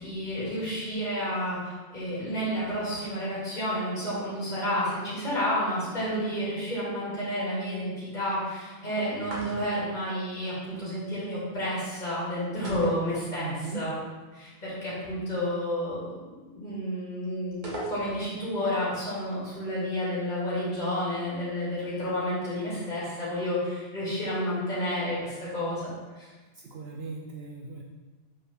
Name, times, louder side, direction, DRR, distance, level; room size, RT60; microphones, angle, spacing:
voice 1, 0.0-14.0 14.3-17.6 17.9-26.3, equal, 40° left, -9 dB, 2.8 m, -30 dB
sound 1, 9.2-9.9 12.6-13.7 14.0-14.1 17.6-18.4, right 1 dB, 40° right, 1.5 m, -38 dB
voice 2, 13.4-13.9 26.5-27.8, right 4 dB, 65° right, 1 dB, 0.9 m, -38 dB
6.6 x 4.5 x 6.0 m, 1.3 s
omnidirectional pair, 1.2 m